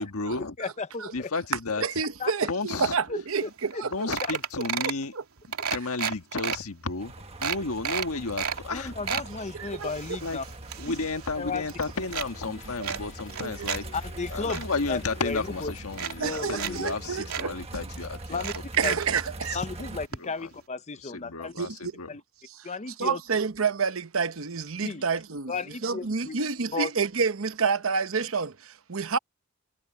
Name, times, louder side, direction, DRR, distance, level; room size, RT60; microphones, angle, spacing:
voice 1, 0.0-0.6 1.1-1.9 2.5-2.9 3.9-5.1 5.7-7.1 7.4-9.0 10.2-10.4 10.8-13.8 14.3-18.4 19.5-19.6 20.2-20.5 21.0-22.1, left 3 dB, 80° left, 1.5 m, -32 dB
voice 2, 0.6-1.3 2.2-2.3 3.1-3.8 8.7-10.4 11.4-11.6 13.9-14.6 14.9-15.7 16.2-16.8 18.3-18.5 18.8-18.9 19.5-21.5 22.1-22.2 22.6-23.2 24.8-25.0 25.5-26.4 26.7-26.9, left 4 dB, 30° left, 0.8 m, -34 dB
voice 3, 1.8-4.1 4.8-5.2 7.5-7.6 9.5-9.9 12.8-13.0 13.4-13.7 16.2-17.6 18.8-19.6 21.6-21.9 22.5-22.7 23.0-25.5 25.8-29.2, right 5 dB, 65° right, 0.9 m, -29 dB
sound 1, 3.4-3.5 3.7-3.9 4.1-5.0 5.5-6.6 7.0-7.1 7.4-8.6 8.9-9.3 9.8-11.3 11.6-12.3 12.8-13.8 14.1-14.6 15.4-15.5 15.9-16.7 17.0-17.1 17.3-17.5 18.3-19.2 20.1-20.2 20.5-20.6, right 7 dB, 85° right, 2.8 m, -32 dB
sound 2, 7.0-20.1, right 1 dB, 30° right, 1.5 m, -42 dB
sound 3, 11.9-16.9, left 3 dB, 60° left, 1.9 m, -48 dB
head